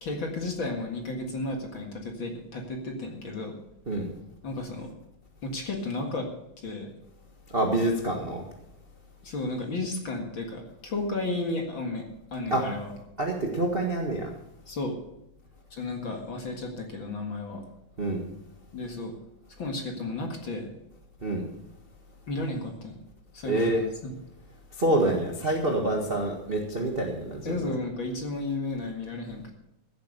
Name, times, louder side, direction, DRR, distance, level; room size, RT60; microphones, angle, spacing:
voice 1, 0.0-3.5 4.4-4.9 5.4-6.3 6.6-6.9 9.2-12.0 12.3-12.9 14.7-14.9 15.7-17.6 18.7-19.1 19.6-20.7 22.3-22.9 23.3-23.7 24.0-24.1 27.4-29.5, left 2 dB, 45° left, 2 dB, 2.2 m, -33 dB
voice 2, 7.5-8.4 12.5-12.6 13.2-14.3 18.0-18.2 21.2-21.4 23.4-23.8 24.8-27.7, right 1 dB, 30° right, 0 dB, 1.0 m, -27 dB
15.5 x 8.2 x 6.6 m, 0.83 s
omnidirectional pair, 3.7 m